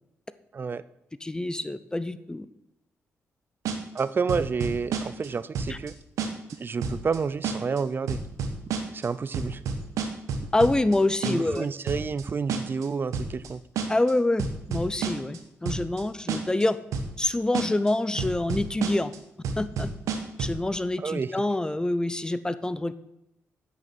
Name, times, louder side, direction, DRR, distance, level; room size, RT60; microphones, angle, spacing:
voice 1, 0.5-0.8 3.9-5.9 6.6-8.2 8.9-9.6 11.2-13.6 21.0-21.3, right 5 dB, 40° right, 16 dB, 0.5 m, -29 dB
voice 2, 1.2-2.5 5.7-5.8 10.5-11.7 13.9-16.8 17.2-19.1 19.6-19.9 20.4-22.9, left 2 dB, 15° left, 14 dB, 0.6 m, -26 dB
sound 1, 3.7-4.0 4.3-5.3 5.5-5.9 6.2-6.5 6.8-7.2 7.4-7.8 8.1-9.1 9.3-11.0 11.2-11.6 11.9-12.2 12.5-12.9 13.1-13.5 13.8-14.1 14.4-15.4 15.7-16.0 16.3-16.6 16.9-17.3 17.5-17.9 18.2-19.2 19.4-20.6, right 5 dB, 90° right, 1.3 m, -30 dB
8.8 x 6.4 x 6.1 m, 0.89 s
cardioid pair, 70°, 5 cm